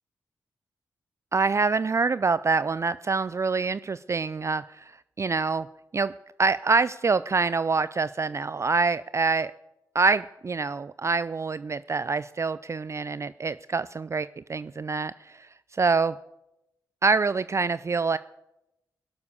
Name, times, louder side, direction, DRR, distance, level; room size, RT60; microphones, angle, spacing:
voice 1, 1.3-4.9 5.2-5.7 5.9-6.1 6.4-9.5 9.9-16.2 17.0-18.2, right 4 dB, 40° right, 16 dB, 0.4 m, -26 dB
17.0 x 7.0 x 6.9 m, 0.91 s
supercardioid pair, 40°, 8 cm